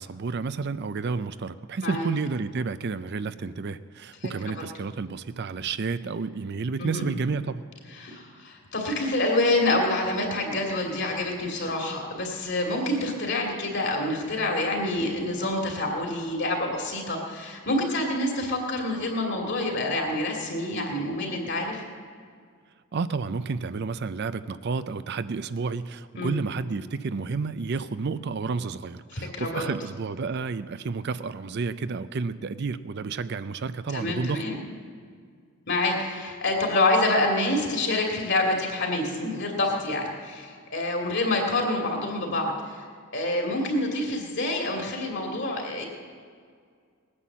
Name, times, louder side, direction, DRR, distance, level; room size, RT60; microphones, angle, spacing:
voice 1, 0.0-7.6 22.9-34.4, right 4 dB, 50° right, 13 dB, 0.4 m, -31 dB
voice 2, 7.9-21.8 26.2-26.3 29.1-29.7 33.9-34.6 35.7-42.8 43.1-45.9, left 2 dB, 50° left, 1 dB, 2.7 m, -27 dB
19.5 x 9.8 x 7.3 m, 2.1 s
head